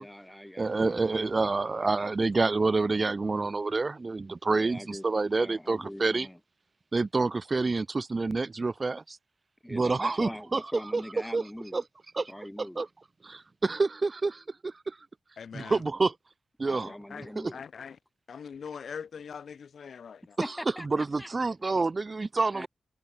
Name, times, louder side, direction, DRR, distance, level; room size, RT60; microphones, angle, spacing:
voice 1, 0.0-1.5 2.8-3.2 4.5-5.1 5.4-6.4 9.6-11.8 12.3-12.8 16.7-17.6 20.4-21.3 21.8-21.9 22.5-22.7, left 1 dB, 5° left, 3.3 m, -43 dB
voice 2, 0.6-6.3 6.9-9.2 9.7-10.6 10.9-11.0 11.3-11.4 11.7-11.8 12.1-12.3 12.7-12.9 13.2-15.0 15.5-16.1 16.6-16.9 17.3-17.4 20.9-22.7, right 3 dB, 30° right, 3.4 m, -28 dB
voice 3, 15.4-15.8 16.8-18.0 18.3-20.4, left 6 dB, 65° left, 7.1 m, -42 dB
wide cardioid pair, 135°, 0 cm